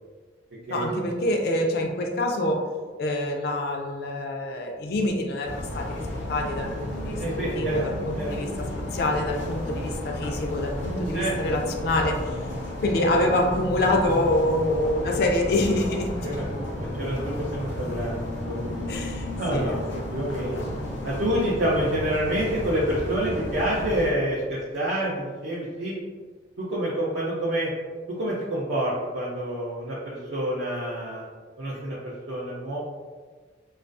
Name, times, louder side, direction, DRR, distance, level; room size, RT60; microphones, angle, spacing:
voice 1, 0.7-2.7 3.0-6.0 6.3-12.4 12.8-16.4 18.9-20.0, left 1 dB, 55° left, 2 dB, 0.3 m, -26 dB
sound 1, 5.4-24.1, left 1 dB, 90° left, 0.6 m, -33 dB
voice 2, 7.2-7.8 8.2-8.3 11.1-11.3 16.2-16.7 17.0-18.6 19.4-19.8 20.1-20.6 21.0-25.9 26.6-27.7 28.1-31.2 31.6-32.8, right 1 dB, 65° right, -7 dB, 0.4 m, -28 dB
2.3 x 2.3 x 2.4 m, 1.4 s
head